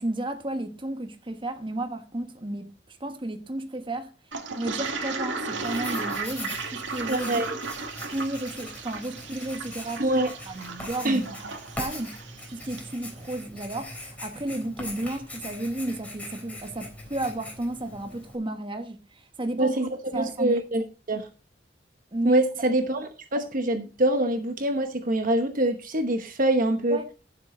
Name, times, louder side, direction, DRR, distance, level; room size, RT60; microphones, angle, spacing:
voice 1, 0.0-2.7 3.0-4.1 4.6-7.7 8.0-10.0 10.5-11.3 11.8-12.1 12.5-19.7 20.1-20.6 22.1-22.4 26.9-27.1, right 1 dB, 25° right, 1.3 m, -33 dB
Toilet flush, 4.3-12.9, right 4 dB, 90° right, 2.0 m, -35 dB
Writing, 5.5-18.4, left 1 dB, 10° left, 3.6 m, -41 dB
voice 2, 7.1-7.5 10.0-10.3 11.0-11.2 19.6-21.3 22.2-27.0, right 1 dB, 50° right, 1.0 m, -25 dB
14.0 x 7.5 x 3.8 m
head